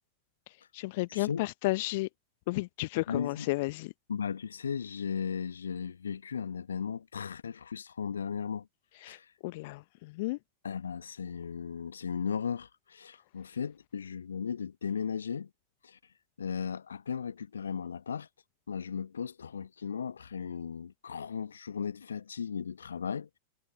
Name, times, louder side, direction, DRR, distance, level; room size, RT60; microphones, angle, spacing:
voice 1, 0.5-2.1 2.5-3.9 8.9-10.4, left 21 dB, 50° left, 0.8 m, -33 dB
voice 2, 1.1-1.4 3.1-3.5 4.1-8.7 9.0-9.3 10.6-15.5 15.8-16.0 16.4-18.3 18.7-23.4, left 7 dB, 70° left, 1.4 m, -36 dB
figure-of-eight pair, 90°, 0 cm